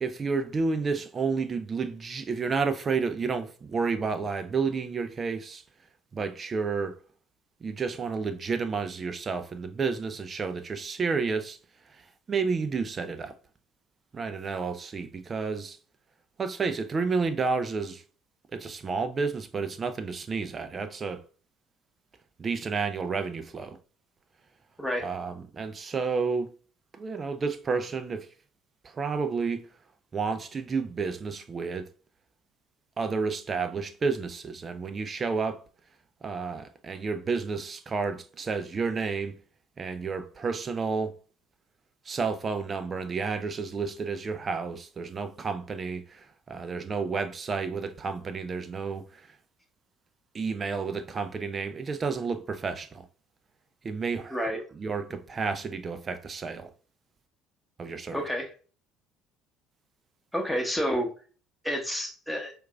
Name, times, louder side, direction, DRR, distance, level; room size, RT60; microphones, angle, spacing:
voice 1, 0.0-5.6 6.1-7.0 7.6-11.6 12.0-13.3 14.1-15.8 16.4-18.0 18.5-21.2 22.4-23.8 25.0-26.5 26.9-28.3 28.8-29.6 30.1-31.9 33.0-35.6 36.2-39.4 39.8-41.1 42.1-49.3 50.3-53.1 53.8-56.7 57.8-58.2, right 4 dB, 35° right, 0.5 m, -31 dB
voice 2, 58.1-58.5 60.3-61.1 61.6-62.5, equal, 5° left, 1.1 m, -29 dB
4.6 x 2.5 x 2.3 m
hypercardioid pair, 65°, 0 cm